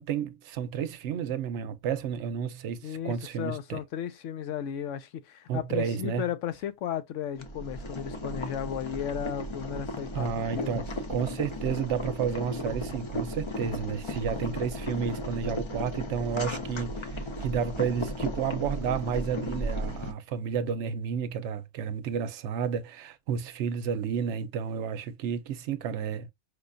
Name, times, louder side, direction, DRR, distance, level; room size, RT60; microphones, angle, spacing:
voice 1, 0.0-3.8 5.5-6.2 10.1-26.3, right 7 dB, 75° right, 0.9 m, -31 dB
voice 2, 2.8-10.8, left 9 dB, 85° left, 0.9 m, -35 dB
Boiling, 7.4-20.1, left 1 dB, 45° left, 0.4 m, -35 dB
4.9 x 2.2 x 2.4 m
omnidirectional pair, 1.2 m